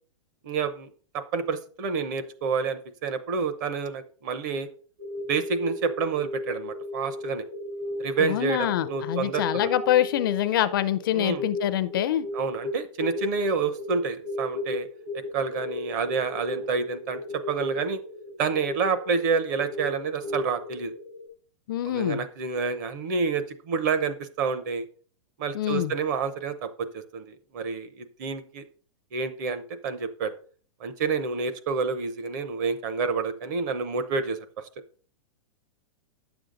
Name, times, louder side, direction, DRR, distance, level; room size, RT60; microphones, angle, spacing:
voice 1, 0.4-4.7 5.3-7.4 8.0-9.7 11.1-11.4 12.3-14.9 15.1-17.2 17.5-18.0 18.4-20.9 21.9-24.8 25.4-28.6 29.1-30.3 30.8-34.4, right 5 dB, 35° right, 11 dB, 0.8 m, -28 dB
sound 1, 5.0-21.3, left 1 dB, 60° right, 4.8 m, -35 dB
voice 2, 8.2-12.3 21.7-22.2 25.5-25.9, left 12 dB, 40° left, 14 dB, 0.4 m, -25 dB
9.9 x 7.0 x 3.8 m, 0.42 s
supercardioid pair, 175°, 17 cm